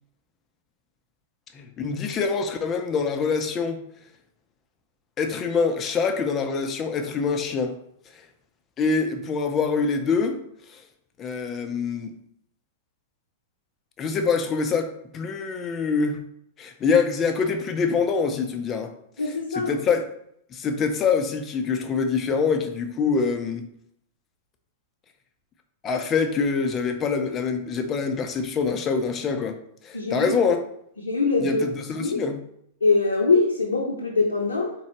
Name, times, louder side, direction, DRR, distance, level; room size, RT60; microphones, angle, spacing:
voice 1, 1.5-3.8 5.2-7.8 8.1-8.2 8.8-10.4 10.7-10.8 11.2-12.1 14.0-16.2 16.6-18.9 19.2-20.1 20.5-23.7 25.8-29.6 29.8-30.6 31.4-32.4, left 5 dB, 30° left, 6 dB, 0.7 m, -25 dB
voice 2, 19.2-19.8 29.9-30.4 31.0-31.6 32.0-32.2 32.8-34.7, left 3 dB, 90° left, -1 dB, 0.7 m, -23 dB
4.2 x 3.7 x 3.1 m, 0.72 s
hypercardioid pair, 100°, 0 cm